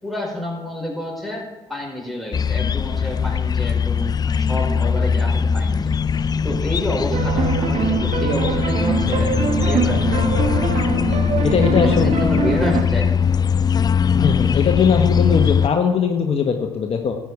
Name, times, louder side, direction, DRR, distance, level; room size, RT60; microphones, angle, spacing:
voice 1, 0.0-5.9 6.4-9.3 9.7-10.3 11.8-13.1, left 1 dB, ahead, -3 dB, 4.7 m, -28 dB
sound 1, 2.3-15.7, left 6 dB, 30° left, 0.4 m, -20 dB
sound 2, 7.1-12.8, right 5 dB, 55° right, 1.4 m, -23 dB
voice 2, 11.4-12.1 14.1-17.2, left 6 dB, 45° left, 4 dB, 1.1 m, -19 dB
13.0 x 8.5 x 4.7 m, 1.1 s
supercardioid pair, 70°, 13 cm